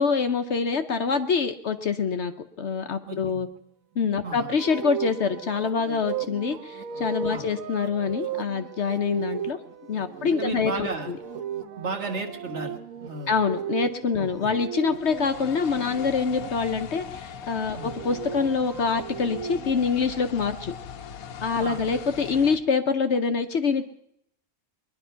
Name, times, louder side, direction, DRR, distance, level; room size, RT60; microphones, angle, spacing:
voice 1, 0.0-2.3 2.6-3.5 4.0-9.6 9.9-11.2 13.3-20.7 21.4-23.9, left 5 dB, 55° left, 8 dB, 1.0 m, -25 dB
voice 2, 3.0-3.5 4.2-4.5 7.3-7.5 10.4-11.1 11.7-12.7 13.0-13.4 14.2-14.5 17.7-17.9 21.6-21.8, right 3 dB, 50° right, 3 dB, 1.8 m, -34 dB
sound 1, 4.6-16.5 17.6-19.9, right 8 dB, 70° right, 1.3 m, -36 dB
sound 2, 14.9-22.6, left 7 dB, 90° left, 1.3 m, -40 dB
21.5 x 11.0 x 5.6 m, 0.74 s
omnidirectional pair, 1.5 m